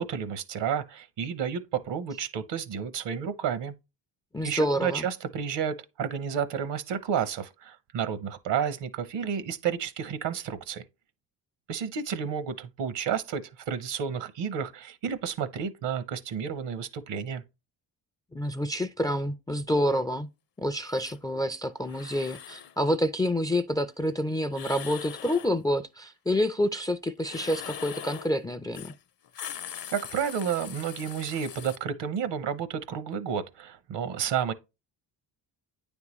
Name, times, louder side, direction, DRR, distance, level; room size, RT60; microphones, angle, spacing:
voice 1, 0.0-3.7 4.4-10.8 11.7-17.4 29.9-34.5, right 7 dB, 70° right, 0.9 m, -31 dB
voice 2, 4.3-5.0 18.3-20.3 20.6-28.9, equal, 10° left, 0.3 m, -28 dB
sound 1, 20.9-21.2 21.8-22.7 24.5-25.5 27.2-28.3 28.7-29.0 29.2-31.8, left 9 dB, 50° left, 0.7 m, -41 dB
9.3 x 3.6 x 3.0 m
supercardioid pair, 65°, 45 cm